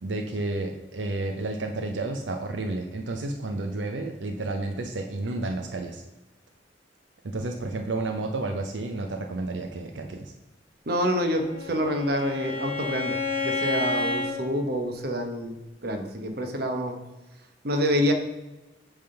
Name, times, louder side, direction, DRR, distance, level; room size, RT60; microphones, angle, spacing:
voice 1, 0.0-6.0 7.2-10.3, right 2 dB, 85° right, 4 dB, 0.7 m, -31 dB
voice 2, 10.9-13.2 13.4-15.6 15.8-17.0 17.6-18.1, equal, 60° right, 5 dB, 1.1 m, -27 dB
Bowed string instrument, 11.1-14.3, left 3 dB, 30° right, 2.6 m, -30 dB
8.8 x 3.6 x 5.7 m, 1.1 s
head